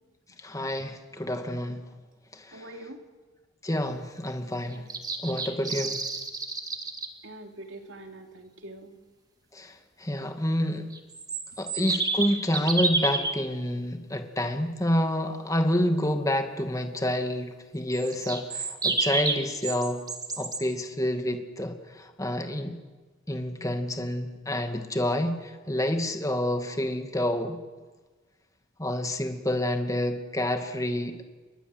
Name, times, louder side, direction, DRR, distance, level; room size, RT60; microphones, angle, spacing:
voice 1, 0.4-1.8 2.3-2.6 3.6-4.8 5.2-6.0 9.5-10.9 11.6-20.0 20.4-22.8 23.3-27.6 28.8-31.2, left 1 dB, 15° left, 5 dB, 2.3 m, -28 dB
voice 2, 2.5-3.0 7.2-9.0, right 1 dB, 60° right, 4 dB, 3.1 m, -44 dB
sound 1, 4.7-7.1 10.9-13.3 17.9-20.6, right 3 dB, 20° right, 2.1 m, -30 dB
30.0 x 23.0 x 8.1 m, 1.3 s
head